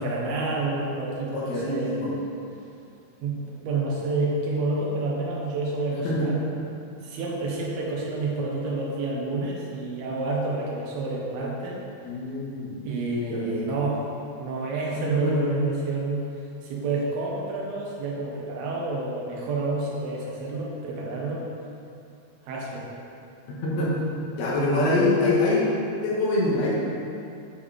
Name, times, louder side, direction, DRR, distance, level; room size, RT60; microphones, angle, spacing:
voice 1, 0.0-2.0 3.2-6.4 7.0-11.8 12.9-14.0 14.4-16.3 16.6-21.4 22.5-22.9, right 2 dB, 85° right, -3 dB, 3.0 m, -29 dB
voice 2, 1.3-2.1 6.0-6.3 12.0-12.8 13.3-13.7 15.0-15.5 23.5-23.9 24.4-25.7 26.0-26.7, left 2 dB, 80° left, -6 dB, 3.3 m, -25 dB
9.2 x 5.4 x 3.4 m, 2.6 s
omnidirectional pair, 4.4 m